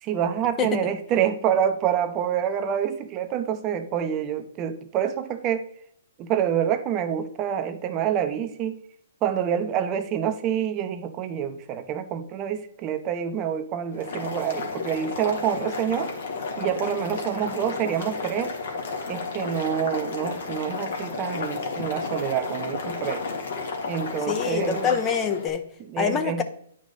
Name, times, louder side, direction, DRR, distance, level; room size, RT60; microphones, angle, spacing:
voice 1, 0.0-5.7 6.2-8.8 9.2-16.1 16.6-18.5 19.1-23.2 23.9-25.0 25.8-26.4, right 9 dB, 30° right, 8 dB, 0.7 m, -27 dB
Boiling, 13.9-25.5, left 4 dB, 65° left, 2.0 m, -32 dB
voice 2, 24.3-25.6 26.0-26.4, left 7 dB, 25° left, 8 dB, 0.8 m, -25 dB
9.6 x 4.9 x 4.1 m, 0.67 s
hypercardioid pair, 135°, 0 cm